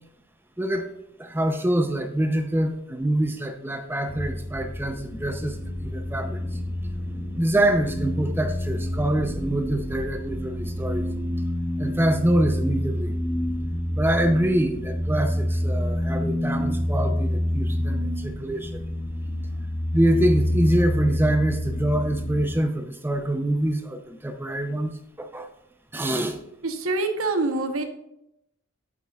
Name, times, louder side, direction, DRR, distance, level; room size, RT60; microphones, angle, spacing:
voice 1, 0.6-0.9 1.2-6.6 7.3-11.1 11.8-13.2 13.9-18.8 19.9-24.9 25.2-25.5 25.9-26.4, right 1 dB, 10° right, 6 dB, 0.6 m, -25 dB
sound 1, 4.1-22.5, left 1 dB, 15° left, 0.8 m, -28 dB
voice 2, 26.6-27.8, right 2 dB, 80° right, 6 dB, 0.9 m, -25 dB
8.4 x 7.6 x 2.3 m, 0.80 s
head